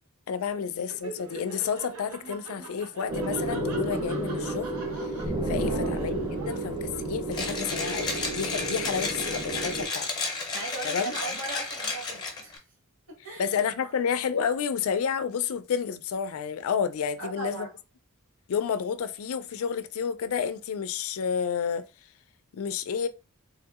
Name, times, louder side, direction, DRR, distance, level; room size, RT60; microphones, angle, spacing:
voice 1, 0.3-4.7 5.0-10.4 10.8-11.2 13.4-17.7 18.5-21.9 22.5-23.1, left 7 dB, 70° left, 0.4 m, -30 dB
Laughter, 0.8-7.4, right 3 dB, 80° right, 0.7 m, -44 dB
sound 1, 3.1-9.9, right 2 dB, 20° right, 0.7 m, -31 dB
voice 2, 5.6-6.0 10.5-12.6 13.1-13.6 17.2-17.7, right 3 dB, 65° right, 1.3 m, -38 dB
Mechanisms, 7.3-12.6, left 3 dB, 20° left, 0.7 m, -32 dB
3.4 x 2.7 x 2.3 m
head